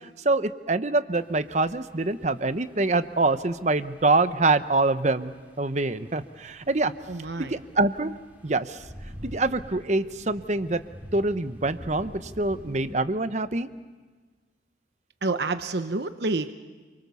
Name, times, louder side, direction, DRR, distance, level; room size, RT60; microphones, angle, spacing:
voice 1, 0.2-5.3 5.6-6.9 7.4-8.1 8.4-8.8 9.2-10.8 11.1-13.7, right 2 dB, 40° right, 12 dB, 0.9 m, -25 dB
sound 1, 1.2-12.9, equal, 10° right, 3.4 m, -47 dB
voice 2, 7.1-7.5 15.2-16.5, right 3 dB, 65° right, 9 dB, 0.9 m, -28 dB
28.5 x 24.0 x 7.0 m, 1.4 s
head